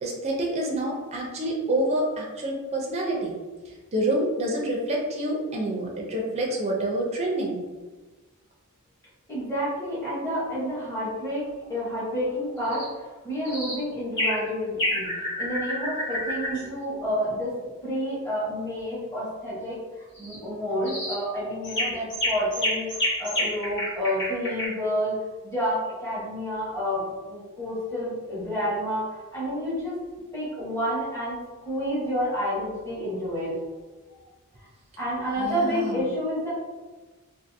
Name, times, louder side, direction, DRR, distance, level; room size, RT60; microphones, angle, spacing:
voice 1, 0.0-3.3 3.9-7.6 35.4-36.0, right 1 dB, 30° right, -1 dB, 0.4 m, -27 dB
voice 2, 9.3-15.1 15.4-17.5 17.8-19.8 20.2-25.1 25.4-29.1 29.3-30.0 30.3-31.4 31.6-33.5 34.1-34.2 35.0-36.5, equal, 10° left, -10 dB, 0.9 m, -29 dB
sound 1, 12.6-12.9 13.4-13.8 14.2-14.4 14.8-16.6 20.2-20.4 20.8-21.2 21.6-24.7, left 1 dB, 55° left, 1.2 m, -29 dB
2.6 x 2.4 x 2.6 m, 1.3 s
head